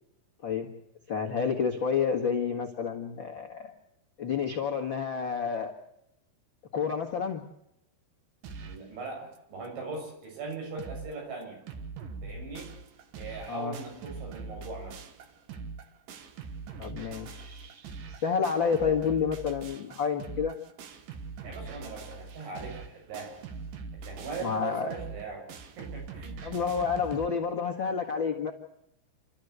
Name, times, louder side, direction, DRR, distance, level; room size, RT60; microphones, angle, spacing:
voice 1, 1.1-3.7 4.2-5.7 6.7-7.4 13.5-13.8 16.8-20.5 24.4-24.9 26.4-28.5, left 6 dB, 85° left, 1 dB, 1.0 m, -29 dB
sound 1, 8.4-8.9 9.3-9.4 9.6-9.7 10.2-10.3 10.5-11.1 11.4-27.3, right 4 dB, 65° right, 2.6 m, -42 dB
voice 2, 8.6-11.6 12.2-12.7 13.2-15.0 21.4-23.4 23.9-25.4 25.8-26.4, right 4 dB, 90° right, 1 dB, 9.6 m, -40 dB
29.0 x 13.5 x 8.2 m, 0.80 s
omnidirectional pair, 5.2 m